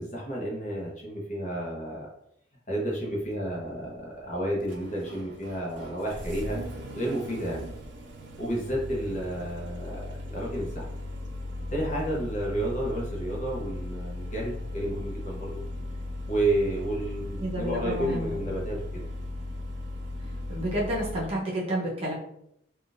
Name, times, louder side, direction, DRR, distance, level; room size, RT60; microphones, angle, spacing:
voice 1, 0.0-2.1 2.7-6.6 6.9-7.6 8.4-10.9 11.7-15.5 16.3-19.1, right 1 dB, 40° left, -3 dB, 0.8 m, -31 dB
Engine starting, 3.2-21.4, left 1 dB, 65° right, 0.5 m, -37 dB
voice 2, 17.4-18.4 20.5-22.1, right 1 dB, 30° right, -5 dB, 0.8 m, -30 dB
3.6 x 2.4 x 2.5 m, 0.75 s
head